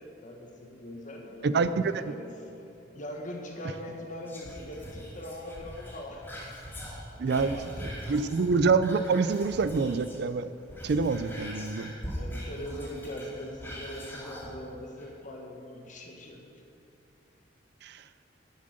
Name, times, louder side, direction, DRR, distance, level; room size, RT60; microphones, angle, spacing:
voice 1, 0.0-1.7 2.0-2.3 2.9-6.6 7.1-8.3 12.1-16.5, left 1 dB, 40° left, 1 dB, 1.5 m, -41 dB
voice 2, 1.4-2.0 7.2-7.6 8.1-10.5 10.8-11.9 17.8-18.0, right 4 dB, 60° right, 13 dB, 0.4 m, -26 dB
Whispering, 4.3-10.3 10.6-14.5 15.0-15.1, equal, 10° left, 2.7 m, -41 dB
11.5 x 7.4 x 6.5 m, 2.7 s
head